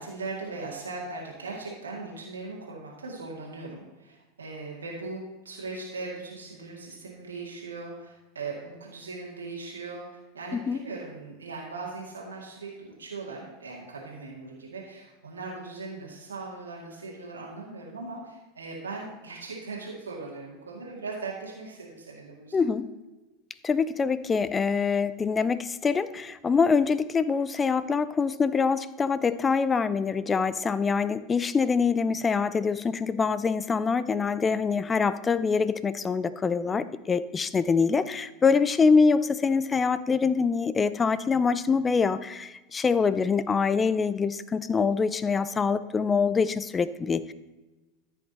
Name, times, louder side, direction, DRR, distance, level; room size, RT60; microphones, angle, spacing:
voice 1, 0.0-22.6 36.5-36.9, right 3 dB, 80° right, -3 dB, 2.1 m, -39 dB
voice 2, 22.5-22.9 23.6-47.3, left 5 dB, 20° left, 15 dB, 0.5 m, -25 dB
14.0 x 5.9 x 4.2 m, 1.1 s
figure-of-eight pair, 85°, 0 cm